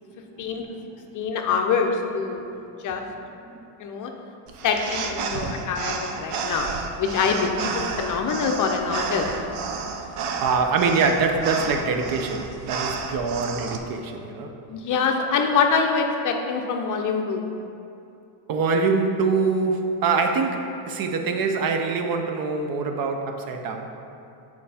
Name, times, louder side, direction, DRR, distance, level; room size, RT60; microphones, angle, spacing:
voice 1, 0.4-1.0 2.5-2.6 2.9-3.0 3.5-3.7 10.4-14.5 18.5-23.9, right 4 dB, 45° right, 5 dB, 0.7 m, -24 dB
voice 2, 1.1-2.4 2.8-3.0 3.8-4.1 4.6-6.7 7.0-7.7 8.0-9.3 14.7-17.4, left 5 dB, 40° left, 3 dB, 0.6 m, -24 dB
sound 1, 4.5-13.8, right 5 dB, 90° right, 0.8 m, -31 dB
7.4 x 4.6 x 4.2 m, 2.6 s
cardioid pair, 140°, 50 cm